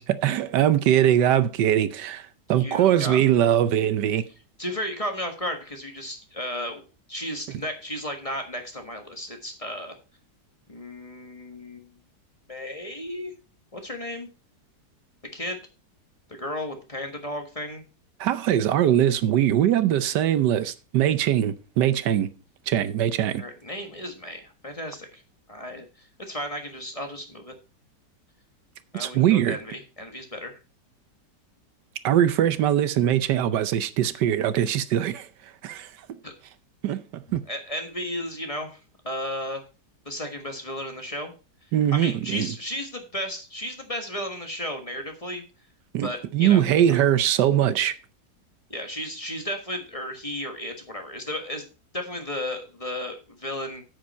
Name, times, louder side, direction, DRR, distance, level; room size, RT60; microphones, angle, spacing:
voice 1, 0.0-4.2 18.2-22.3 22.7-23.4 28.9-29.6 32.0-35.3 35.6-35.9 36.8-37.4 41.7-42.5 45.9-47.9, right 11 dB, 85° right, 1.4 m, -22 dB
voice 2, 2.6-3.4 4.6-6.8 7.1-10.0 10.7-11.9 12.5-13.3 13.7-14.3 15.3-15.6 16.3-17.8 23.4-25.2 25.5-27.5 28.9-30.6 36.2-36.3 37.5-39.6 40.0-41.3 41.9-45.4 46.0-46.6 48.7-51.6 51.9-53.8, left 1 dB, 20° left, 1.4 m, -34 dB
9.1 x 8.0 x 4.2 m
omnidirectional pair, 1.8 m